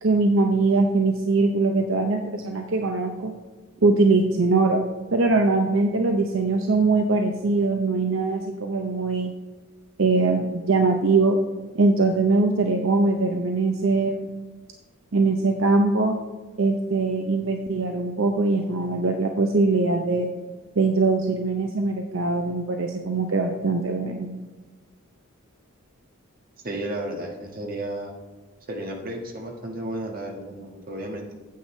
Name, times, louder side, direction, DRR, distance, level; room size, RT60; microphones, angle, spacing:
voice 1, 0.0-3.3 3.8-4.8 5.1-9.3 10.0-11.4 11.7-14.3 15.1-16.2 16.6-20.3 20.8-24.3, right 3 dB, 65° right, 3 dB, 0.7 m, -22 dB
voice 2, 26.6-28.1 28.7-31.3, right 1 dB, 45° right, 1 dB, 1.5 m, -33 dB
9.2 x 8.2 x 3.2 m, 1.3 s
head